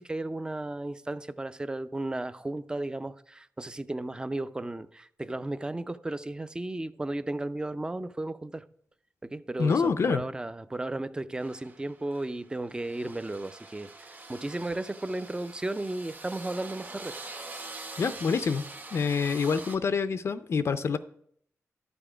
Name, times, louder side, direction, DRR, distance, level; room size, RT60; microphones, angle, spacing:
voice 1, 0.0-8.6 9.2-17.2, right 2 dB, 15° right, 0.4 m, -34 dB
voice 2, 9.6-10.2 18.0-18.6 18.9-21.0, left 5 dB, 55° left, 0.4 m, -26 dB
sound 1, 11.4-19.8, right 3 dB, 35° right, 1.0 m, -44 dB
11.5 x 7.0 x 4.9 m
wide cardioid pair, 105°, 5 cm